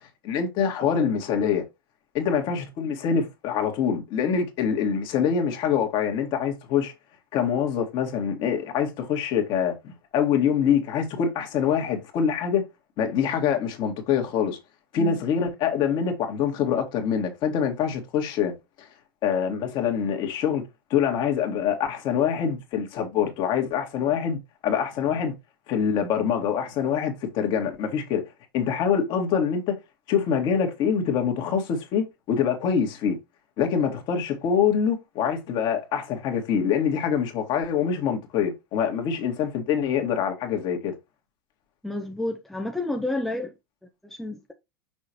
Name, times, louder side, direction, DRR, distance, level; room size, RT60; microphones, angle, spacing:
voice 1, 0.2-1.6 2.1-6.9 7.3-12.6 13.0-14.6 14.9-18.5 18.8-18.9 19.2-20.6 20.9-25.3 25.7-28.2 28.5-29.7 30.1-33.2 33.6-40.9, left 7 dB, 40° left, 2.0 m, -25 dB
voice 2, 41.8-43.5 44.0-44.5, left 2 dB, ahead, 0.9 m, -30 dB
6.2 x 5.6 x 2.9 m
figure-of-eight pair, 90°, 12 cm